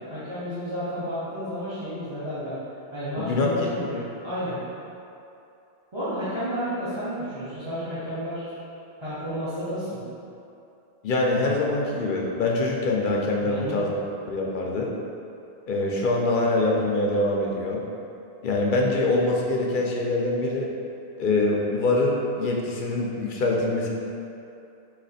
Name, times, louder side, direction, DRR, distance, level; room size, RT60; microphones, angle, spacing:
voice 1, 0.1-2.5 2.9-4.6 5.9-8.7 9.0-10.0 13.4-13.8, equal, 25° right, -14 dB, 0.9 m, -31 dB
voice 2, 3.2-3.5 11.0-14.0 14.3-14.9 15.7-17.8 18.4-20.7 21.2-23.9, left 2 dB, 55° left, -1 dB, 0.6 m, -24 dB
4.0 x 2.8 x 4.1 m, 2.7 s
omnidirectional pair, 1.2 m